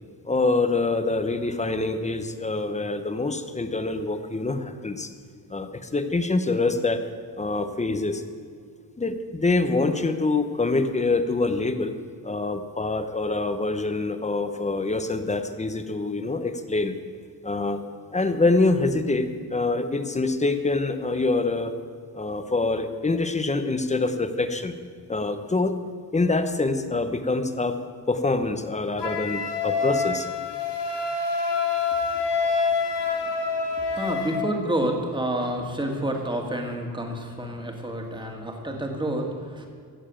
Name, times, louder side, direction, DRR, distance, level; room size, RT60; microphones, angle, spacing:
voice 1, 0.2-5.1 5.5-7.0 7.4-8.2 9.0-11.9 12.2-16.9 17.4-17.8 18.1-21.7 22.1-24.7 25.1-25.7 26.1-27.8 28.1-30.3, left 3 dB, 15° left, 9 dB, 0.8 m, -25 dB
Wind instrument woodwind instrument, 29.0-34.4, left 4 dB, 85° left, 1.9 m, -26 dB
voice 2, 32.1-32.6 33.1-39.7, right 1 dB, 10° right, 2 dB, 1.9 m, -29 dB
15.5 x 7.3 x 9.0 m, 2.1 s
wide cardioid pair, 155°, 40 cm